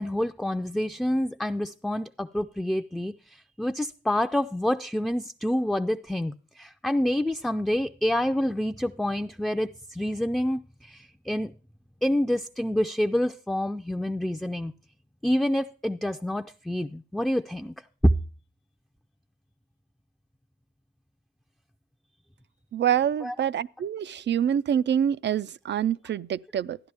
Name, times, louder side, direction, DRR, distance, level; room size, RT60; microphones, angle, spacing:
voice 1, 0.0-3.1 3.6-11.5 12.0-14.7 15.2-17.7 23.2-23.3, left 1 dB, ahead, 0.4 m, -28 dB
voice 2, 22.7-26.8, right 9 dB, 65° right, 0.4 m, -26 dB
13.0 x 10.5 x 3.4 m
cardioid pair, 80°, 19 cm